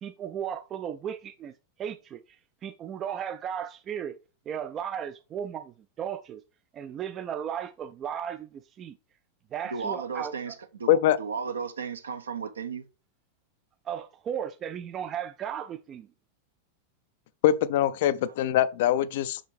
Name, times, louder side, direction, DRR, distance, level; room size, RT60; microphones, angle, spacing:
voice 1, 0.0-1.5 1.8-2.4 2.6-4.2 4.5-6.4 6.7-9.0 9.5-10.5 13.9-16.1, right 9 dB, 30° right, 0.3 m, -35 dB
voice 2, 9.6-12.8, right 5 dB, 70° right, 0.7 m, -34 dB
voice 3, 17.4-19.4, left 11 dB, 55° left, 0.4 m, -23 dB
6.0 x 5.0 x 3.3 m
figure-of-eight pair, 90°, 0 cm